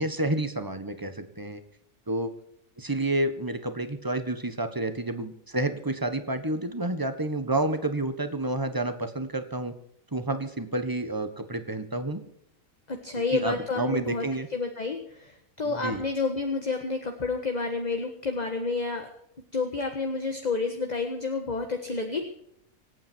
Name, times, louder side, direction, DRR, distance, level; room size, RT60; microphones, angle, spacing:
voice 1, 0.0-1.6 2.1-2.3 2.8-9.7 10.1-12.2 13.3-14.5 15.6-16.0, right 2 dB, 15° right, 9 dB, 1.4 m, -29 dB
voice 2, 12.9-14.2 14.5-15.3 15.6-19.1 19.5-22.2, left 4 dB, 30° left, 4 dB, 1.6 m, -29 dB
26.5 x 9.0 x 4.6 m, 0.74 s
omnidirectional pair, 1.5 m